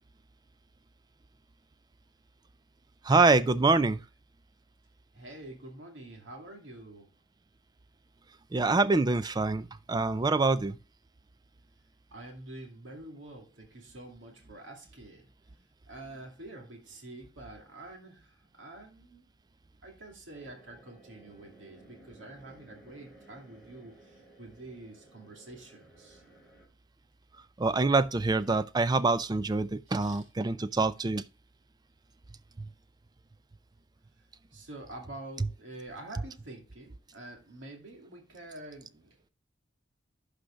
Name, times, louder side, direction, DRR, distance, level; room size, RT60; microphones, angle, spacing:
voice 1, 3.1-4.0 8.5-10.8 27.6-31.2, right 3 dB, 20° right, 0.4 m, -25 dB
voice 2, 5.1-7.1 12.1-15.3 15.9-19.3 19.8-26.2 29.9-30.2 34.5-39.3, right 2 dB, 80° right, 2.4 m, -47 dB
sound 1, 20.3-26.7, right 2 dB, 5° right, 3.7 m, -57 dB
11.5 x 5.0 x 3.3 m
head